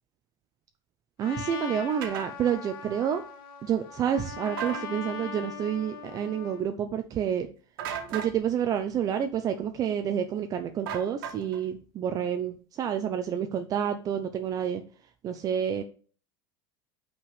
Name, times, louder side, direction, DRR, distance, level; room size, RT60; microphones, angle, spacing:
Trumpet, 1.2-6.7, left 6 dB, 90° left, 1.7 m, -40 dB
voice 1, 1.2-3.2 3.6-7.5 8.1-14.8 15.2-15.8, right 8 dB, 30° right, 7 dB, 0.6 m, -29 dB
sound 1, 2.0-2.3 4.5-4.8 7.8-8.3 10.9-11.6, right 8 dB, 90° right, 1.9 m, -35 dB
5.9 x 5.3 x 6.5 m, 0.40 s
supercardioid pair, 145°, 12 cm